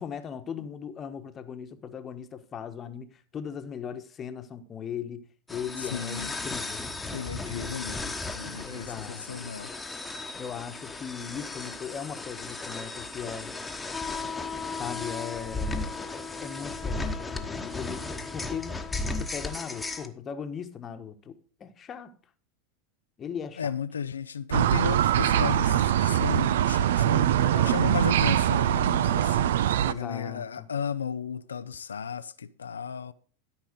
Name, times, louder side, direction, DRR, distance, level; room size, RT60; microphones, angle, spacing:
voice 1, 0.0-5.2 5.5-7.1 7.4-7.8 8.4-9.3 10.3-13.5 14.7-18.0 18.3-22.2 23.2-23.7 27.1-27.9 29.8-30.7, left 7 dB, 30° left, 1.2 m, -38 dB
sound 1, 5.5-20.1, left 3 dB, 10° left, 1.2 m, -35 dB
voice 2, 5.8-6.3 7.1-9.7 23.6-33.1, left 6 dB, 85° left, 0.4 m, -34 dB
sound 2, 24.5-29.9, right 11 dB, 70° right, 0.4 m, -23 dB
13.0 x 5.4 x 5.1 m
hypercardioid pair, 85°, 0 cm